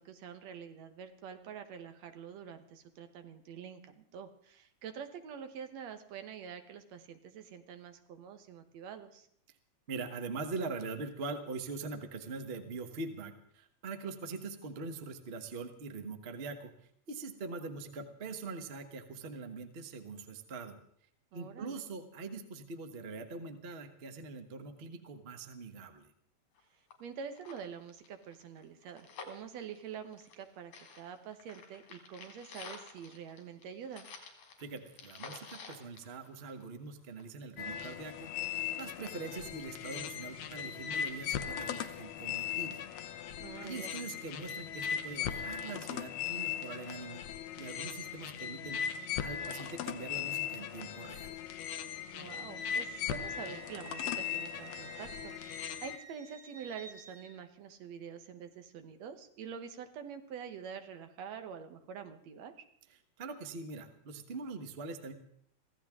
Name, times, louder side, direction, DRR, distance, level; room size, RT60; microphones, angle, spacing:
voice 1, 0.0-9.3 21.3-21.8 27.0-34.1 43.4-44.0 52.1-62.7, right 7 dB, 70° right, 8 dB, 2.3 m, -46 dB
voice 2, 9.9-16.7 17.1-20.8 21.3-26.1 34.6-38.3 38.8-42.9 43.6-47.2 47.6-48.8 49.2-51.4 63.2-65.1, right 3 dB, 90° right, 8 dB, 0.5 m, -43 dB
sound 1, 26.6-26.7 26.9-27.0 27.3-30.5 30.7-36.8 37.2-37.3, left 5 dB, 90° left, 3.7 m, -50 dB
sound 2, 37.6-56.0, left 9 dB, 70° left, 1.8 m, -38 dB
Wind instrument woodwind instrument, 51.6-57.3, right 6 dB, 50° right, 3.4 m, -53 dB
24.0 x 15.5 x 3.6 m, 0.66 s
omnidirectional pair, 3.3 m